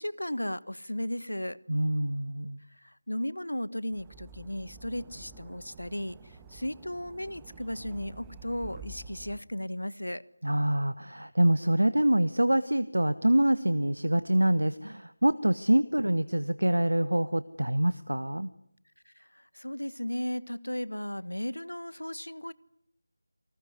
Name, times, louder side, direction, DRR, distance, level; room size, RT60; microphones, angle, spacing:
voice 1, 0.0-1.6 2.8-6.2 6.5-10.2 19.3-22.5, left 1 dB, 90° left, 1.3 m, -35 dB
voice 2, 1.7-2.6 10.4-18.5, right 1 dB, 85° right, 1.2 m, -25 dB
sound 1, 3.9-9.4, right 3 dB, 10° right, 1.4 m, -49 dB
28.0 x 20.0 x 9.5 m
figure-of-eight pair, 165°, 0 cm